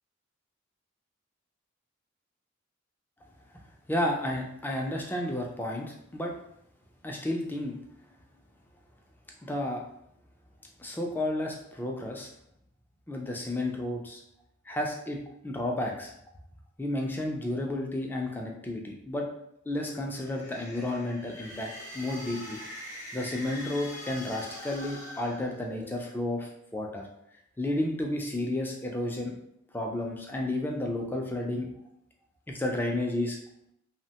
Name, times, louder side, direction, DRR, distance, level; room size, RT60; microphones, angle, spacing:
voice 1, 3.9-6.3 7.0-7.7 9.4-9.8 10.8-12.3 13.1-14.2 14.7-15.2 15.4-16.1 16.8-19.3 19.7-22.6 23.1-27.0 27.6-29.3 29.7-31.7 32.5-33.4, left 1 dB, 10° left, 0 dB, 0.3 m, -32 dB
sound 1, 20.1-26.1, left 1 dB, 35° left, 0.7 m, -43 dB
2.9 x 2.1 x 2.8 m, 0.77 s
head